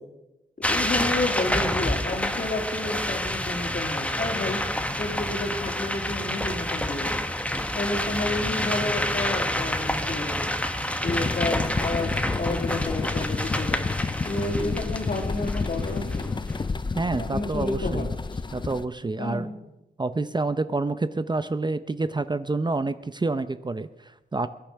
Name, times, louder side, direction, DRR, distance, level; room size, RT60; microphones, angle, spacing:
voice 1, 0.6-4.6 5.0-7.1 7.7-10.5 11.0-13.8 14.2-16.3 17.2-18.1 19.2-19.4, left 2 dB, 50° left, 3 dB, 3.2 m, -30 dB
sound 1, 0.6-16.6, left 1 dB, 5° left, 1.3 m, -28 dB
sound 2, 11.1-18.9, left 4 dB, 25° left, 0.5 m, -30 dB
voice 2, 17.0-18.1 18.5-19.5 20.0-24.5, right 3 dB, 25° right, 12 dB, 0.6 m, -28 dB
21.0 x 10.0 x 5.8 m, 0.96 s
cardioid pair, 70°, 17 cm